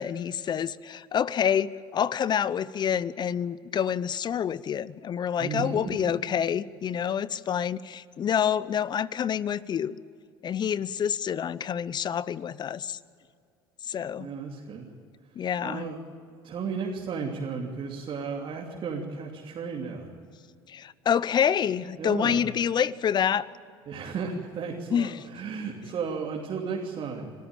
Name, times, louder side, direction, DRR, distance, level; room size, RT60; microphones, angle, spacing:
voice 1, 0.0-10.0 10.4-13.0 13.8-14.3 15.4-15.8 20.7-23.5 24.9-25.1, left 8 dB, 40° left, 19 dB, 0.7 m, -27 dB
voice 2, 5.4-6.1 14.2-14.9 15.6-16.0 16.4-20.2 22.0-22.4 23.9-27.3, right 5 dB, 45° right, -1 dB, 3.0 m, -34 dB
25.0 x 14.0 x 8.9 m, 2.3 s
hypercardioid pair, 85°, 12 cm